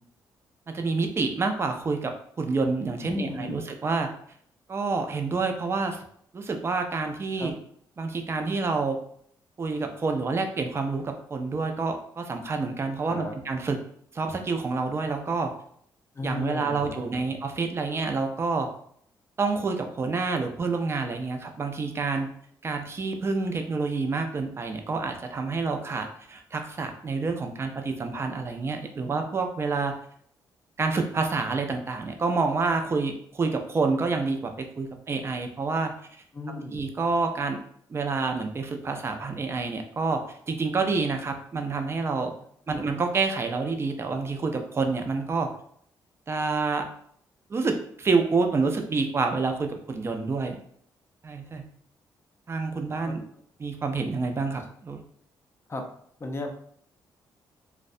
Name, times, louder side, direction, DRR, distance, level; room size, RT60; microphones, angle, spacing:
voice 1, 0.7-2.1 2.4-4.1 4.7-6.0 6.3-7.5 8.0-9.0 9.6-13.8 14.1-15.5 16.2-18.7 19.4-22.3 22.6-29.9 30.8-35.9 36.5-37.6 37.9-40.2 40.5-42.3 42.7-45.5 46.3-46.8 47.5-50.6 51.2-51.6 52.5-53.2 53.6-55.0, right 4 dB, 30° right, 5 dB, 0.4 m, -28 dB
voice 2, 3.0-3.6 7.4-7.5 13.1-13.4 16.1-17.2 36.3-36.8 53.0-53.1 55.7-55.9 56.2-56.5, left 2 dB, 30° left, 3 dB, 0.5 m, -35 dB
2.3 x 2.1 x 2.6 m, 0.63 s
cardioid pair, 80°, 8 cm